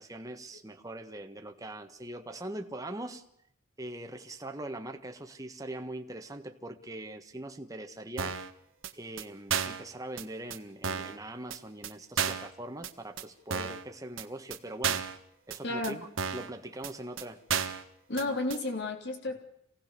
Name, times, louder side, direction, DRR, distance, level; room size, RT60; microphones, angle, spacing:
voice 1, 0.0-3.2 3.8-8.4 8.9-15.1 15.5-17.4 18.2-18.4, right 1 dB, 15° right, 1.5 m, -42 dB
sound 1, 8.2-8.5 8.8-8.9 9.2-9.3 9.5-9.8 10.2-10.3 10.5-10.6 10.8-11.2 11.5-11.6 11.8-11.9 12.2-12.5 12.8-12.9 13.2-13.3 13.5-13.8 14.2-14.3 14.5-14.6 14.8-15.2 15.5-15.6 15.8-15.9 16.2-16.5 16.8-16.9 17.2-17.3 17.5-17.8 18.2-18.3 18.5-18.6, right 7 dB, 70° right, 1.6 m, -32 dB
voice 2, 15.6-16.0 18.1-19.4, left 2 dB, 55° left, 3.2 m, -32 dB
26.5 x 18.0 x 6.9 m
head